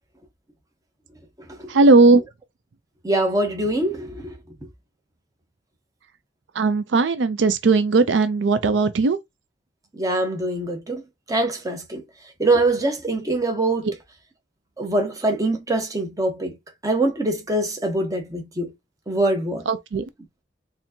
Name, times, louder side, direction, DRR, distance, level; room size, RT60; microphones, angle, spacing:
voice 1, 1.7-2.2 6.6-9.2 19.7-20.0, right 3 dB, 85° right, 0.5 m, -17 dB
voice 2, 3.0-4.3 9.9-11.0 11.3-12.0 12.4-13.9 14.8-16.6 16.8-18.7 19.1-19.6, right 2 dB, 20° right, 0.9 m, -23 dB
4.3 x 2.7 x 2.7 m
head